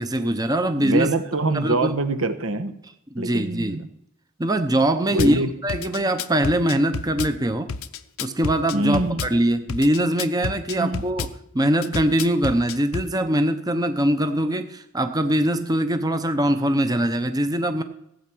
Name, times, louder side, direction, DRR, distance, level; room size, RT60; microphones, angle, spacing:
voice 1, 0.0-1.1 1.5-1.9 3.1-3.8 4.4-7.7 8.2-11.3 11.5-17.8, right 1 dB, 20° right, 8 dB, 0.7 m, -22 dB
voice 2, 0.8-2.7 3.2-3.9 5.1-5.5 8.7-9.2 10.8-11.0, right 2 dB, 75° right, 10 dB, 1.1 m, -24 dB
Drum kit / Bass drum, 5.2-5.4 5.7-7.3 7.7-9.3 9.7-11.3 11.8-13.1, left 5 dB, 90° left, 0.7 m, -30 dB
15.5 x 8.5 x 6.1 m, 0.77 s
head